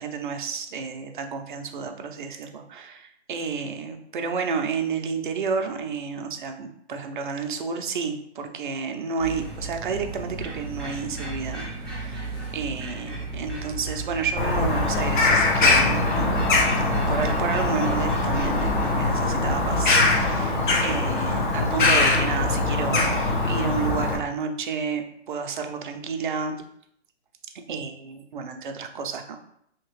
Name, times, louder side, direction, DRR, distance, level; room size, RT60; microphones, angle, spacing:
voice 1, 0.0-26.6 27.7-29.5, right 5 dB, 45° right, 5 dB, 0.5 m, -31 dB
sound 1, 9.2-20.3, right 3 dB, 5° left, 0.6 m, -34 dB
Bird vocalization bird call bird song, 14.4-24.2, left 3 dB, 45° left, 0.8 m, -22 dB
2.9 x 2.9 x 3.0 m, 0.70 s
hypercardioid pair, 140°, 35 cm